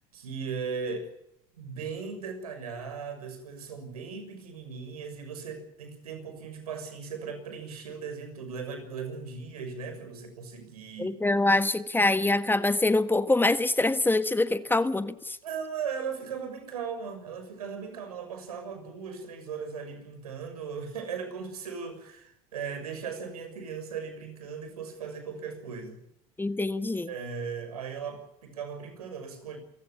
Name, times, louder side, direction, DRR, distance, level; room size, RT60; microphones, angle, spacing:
voice 1, 0.1-1.1 1.6-11.2 15.4-26.0 27.1-29.6, right 6 dB, 85° right, 8 dB, 6.5 m, -38 dB
voice 2, 11.0-15.4 26.4-27.1, left 2 dB, 10° left, 12 dB, 1.4 m, -25 dB
28.0 x 16.0 x 8.7 m, 0.78 s
hypercardioid pair, 80°, 19 cm